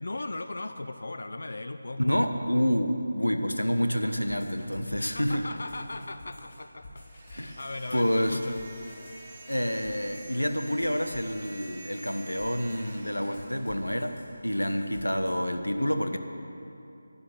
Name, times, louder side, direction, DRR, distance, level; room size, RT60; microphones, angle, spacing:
voice 1, 0.0-2.2 5.1-8.6, left 2 dB, 55° left, 9 dB, 0.5 m, -38 dB
voice 2, 2.0-5.5 7.4-7.6 7.9-8.4 9.5-14.1 14.4-16.2, equal, 85° left, 7 dB, 1.1 m, -28 dB
sound 1, 3.8-15.4, left 2 dB, 35° left, 3.6 m, -51 dB
sound 2, 7.0-14.3, right 2 dB, 20° right, 1.5 m, -49 dB
11.0 x 9.1 x 8.0 m, 2.8 s
figure-of-eight pair, 160°, 0 cm